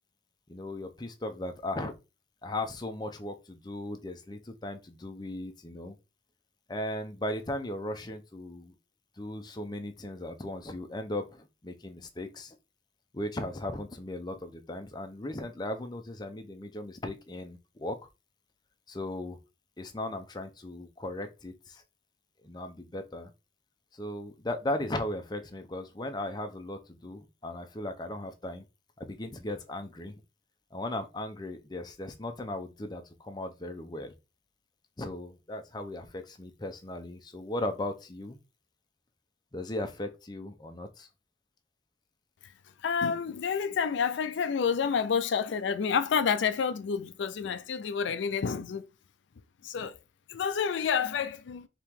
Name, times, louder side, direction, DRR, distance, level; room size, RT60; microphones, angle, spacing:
voice 1, 0.5-1.9 2.4-5.9 6.7-8.7 9.2-12.6 13.1-18.1 18.9-19.4 19.8-21.8 22.4-23.3 23.9-28.6 29.0-30.1 30.7-34.1 35.0-38.4 39.5-41.1, left 1 dB, 20° left, 0.5 m, -37 dB
voice 2, 42.8-48.9 49.6-50.0 50.3-51.7, left 6 dB, 75° left, 0.4 m, -29 dB
4.5 x 2.9 x 3.5 m
head